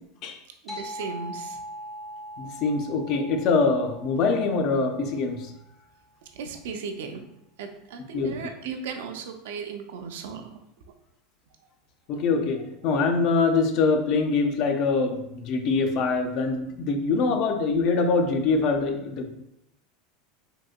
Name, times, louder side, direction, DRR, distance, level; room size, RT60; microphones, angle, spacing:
voice 1, 0.6-1.6 6.3-7.2 7.6-10.6, right 5 dB, 80° right, 5 dB, 0.4 m, -36 dB
sound 1, 0.7-5.6, equal, 25° left, 0.7 m, -41 dB
voice 2, 2.4-5.5 8.1-8.4 12.1-19.3, left 4 dB, 55° left, 6 dB, 0.4 m, -24 dB
3.7 x 2.7 x 2.2 m, 0.81 s
hypercardioid pair, 105°, 0 cm